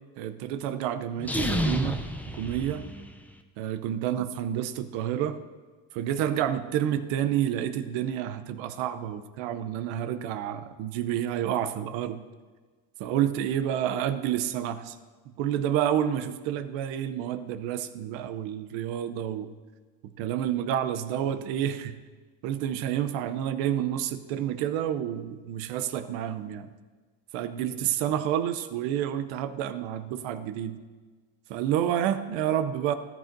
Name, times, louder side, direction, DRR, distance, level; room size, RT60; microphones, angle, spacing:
voice 1, 0.2-2.0 2.3-2.9 3.6-5.4 5.9-12.2 13.0-14.9 15.4-19.5 20.0-22.0 22.4-26.7 27.3-30.8 31.5-32.9, right 10 dB, 85° right, 11 dB, 0.7 m, -29 dB
sound 1, 1.2-3.3, equal, 5° left, 0.7 m, -30 dB
13.0 x 12.0 x 2.6 m, 1.4 s
supercardioid pair, 75°, 45 cm